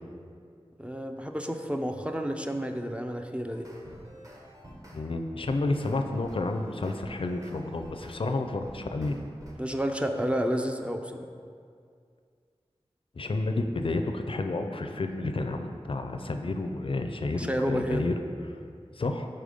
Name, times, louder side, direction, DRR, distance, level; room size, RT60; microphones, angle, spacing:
voice 1, 0.8-3.7 9.6-11.3 17.3-18.0, equal, 10° right, 5 dB, 0.4 m, -30 dB
sound 1, 3.5-5.0 5.4-8.2 8.6-9.6, right 1 dB, 30° right, 0.9 m, -48 dB
voice 2, 4.9-9.2 13.2-18.1 19.0-19.3, left 2 dB, 60° left, 6 dB, 0.4 m, -30 dB
5.0 x 4.4 x 5.2 m, 2.2 s
wide cardioid pair, 70°, 11 cm